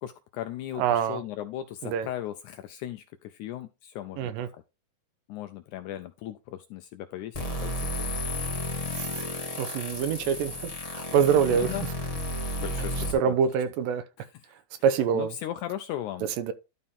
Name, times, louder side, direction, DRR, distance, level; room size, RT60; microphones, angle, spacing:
voice 1, 0.0-4.6 5.3-8.1 11.5-11.8 12.6-13.3 15.1-16.3, left 12 dB, 80° left, 1.8 m, -37 dB
voice 2, 0.8-1.2 1.8-2.1 4.2-4.5 8.9-9.3 9.6-11.7 13.1-14.0 14.8-15.4 16.4-16.5, right 7 dB, 85° right, 2.4 m, -25 dB
sound 1, 7.3-13.1, left 1 dB, 50° left, 0.4 m, -32 dB
12.0 x 4.2 x 3.6 m
omnidirectional pair, 4.0 m